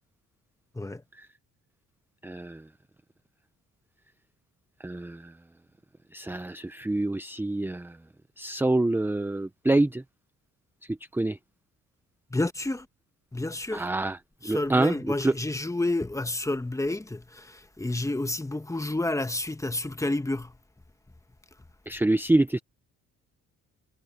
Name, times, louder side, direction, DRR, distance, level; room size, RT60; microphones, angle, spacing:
voice 1, 2.2-2.6 4.8-5.3 6.1-8.0 8.4-10.0 11.1-11.4 13.7-14.2 14.4-14.9 15.2-15.3 21.9-22.6, right 2 dB, 5° right, 0.7 m, -26 dB
voice 2, 12.3-12.9 13.3-13.9 14.4-20.5, left 2 dB, 10° left, 1.3 m, -30 dB
cardioid pair, 90°, 30 cm